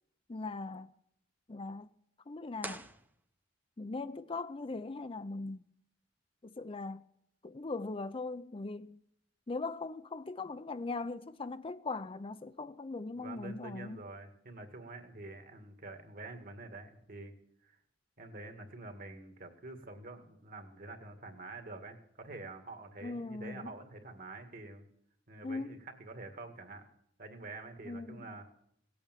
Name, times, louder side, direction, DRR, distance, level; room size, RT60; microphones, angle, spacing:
voice 1, 0.3-0.9 1.5-1.9 2.3-2.9 3.8-5.7 6.4-7.0 7.4-9.0 9.5-14.0 23.0-23.7 25.4-25.8 27.9-28.4, left 3 dB, 30° left, 0.5 m, -40 dB
sound 1, 2.6-3.8, right 2 dB, 10° right, 0.8 m, -46 dB
voice 2, 13.2-17.3 17.6-17.8 18.2-24.9 25.3-26.8 27.2-28.4, right 2 dB, 50° right, 2.0 m, -47 dB
17.5 x 8.5 x 9.1 m
head